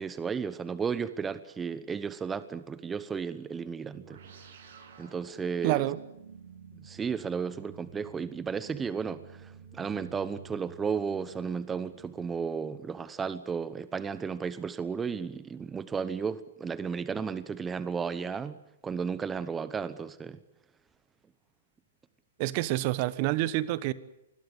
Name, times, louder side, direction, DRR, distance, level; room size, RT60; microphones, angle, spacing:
voice 1, 0.0-4.2 5.0-5.9 6.8-18.6 18.8-20.4, right 6 dB, 15° right, 1.0 m, -34 dB
sound 1, 3.9-12.7, right 6 dB, 60° right, 7.5 m, -51 dB
voice 2, 5.6-6.0 22.4-23.9, right 16 dB, 45° right, 1.2 m, -28 dB
26.5 x 21.0 x 8.3 m
hypercardioid pair, 130°, 0 cm